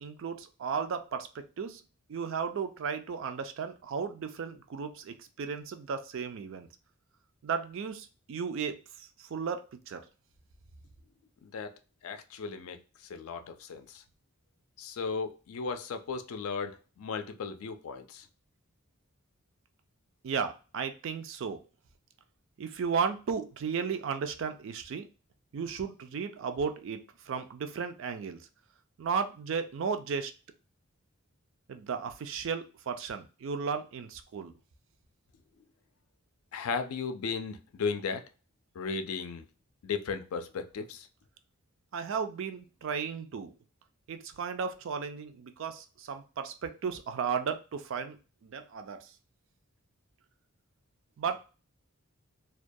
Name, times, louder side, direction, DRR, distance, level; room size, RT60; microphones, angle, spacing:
voice 1, 0.0-1.8 2.1-6.7 7.4-10.0 20.2-21.6 22.6-25.1 25.5-28.4 29.0-30.3 31.7-34.5 41.9-43.5 44.1-49.1 51.2-51.4, right 6 dB, 60° right, 8 dB, 0.4 m, -35 dB
voice 2, 11.4-11.7 12.0-12.8 13.1-14.0 14.8-18.3 36.5-38.2 38.8-39.4 39.8-41.1, left 5 dB, 80° left, 7 dB, 0.4 m, -35 dB
2.3 x 2.2 x 2.6 m, 0.33 s
head